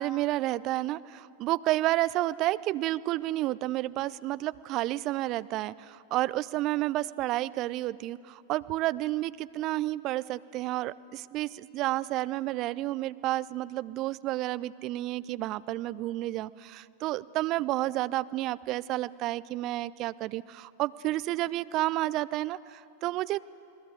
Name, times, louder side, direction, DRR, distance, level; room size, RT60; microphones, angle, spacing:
voice 1, 0.0-23.4, right 16 dB, 40° right, 17 dB, 0.5 m, -30 dB
28.5 x 20.0 x 7.9 m, 2.6 s
figure-of-eight pair, 90°, 0 cm